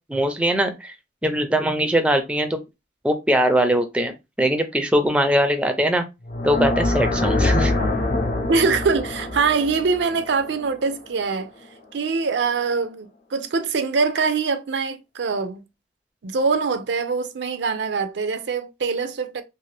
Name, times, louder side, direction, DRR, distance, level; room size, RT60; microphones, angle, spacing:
voice 1, 0.1-0.9 1.2-2.6 3.0-6.0 6.4-7.7, right 1 dB, 5° right, 0.4 m, -21 dB
sound 1, 6.2-11.4, left 2 dB, 50° left, 0.5 m, -24 dB
voice 2, 8.5-11.5 11.9-15.6 16.2-19.4, right 4 dB, 75° right, 0.5 m, -23 dB
2.6 x 2.4 x 3.2 m
head